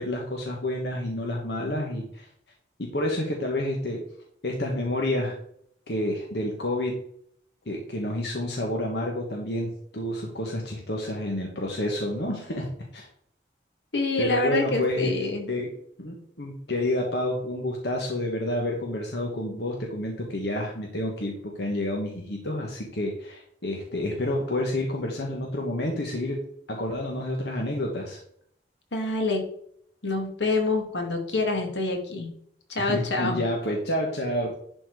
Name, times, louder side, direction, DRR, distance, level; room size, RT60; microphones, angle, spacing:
voice 1, 0.0-2.3 2.8-4.0 4.4-5.4 5.9-7.0 7.6-13.1 14.2-15.1 15.5-15.7 16.0-26.4 26.7-28.2 32.8-34.5, left 1 dB, 70° left, 0 dB, 1.4 m, -29 dB
voice 2, 13.9-15.5 28.9-29.5 30.0-32.3 32.7-33.4, left 2 dB, 85° left, 2 dB, 2.2 m, -26 dB
11.0 x 4.4 x 4.8 m, 0.68 s
head